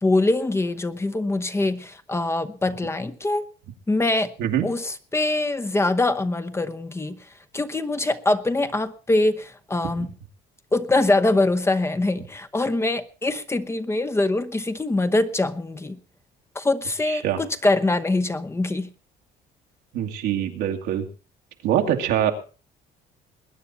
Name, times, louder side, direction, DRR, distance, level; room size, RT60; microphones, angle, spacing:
voice 1, 0.0-3.4 3.9-4.3 4.6-7.2 7.5-10.1 10.7-16.0 16.5-18.9, left 2 dB, 15° left, 11 dB, 0.8 m, -23 dB
voice 2, 4.4-4.7 10.0-10.1 17.1-17.4 19.9-21.1 21.6-22.3, right 10 dB, 85° right, 3 dB, 2.1 m, -24 dB
21.5 x 9.5 x 4.2 m, 0.35 s
cardioid pair, 110°, 17 cm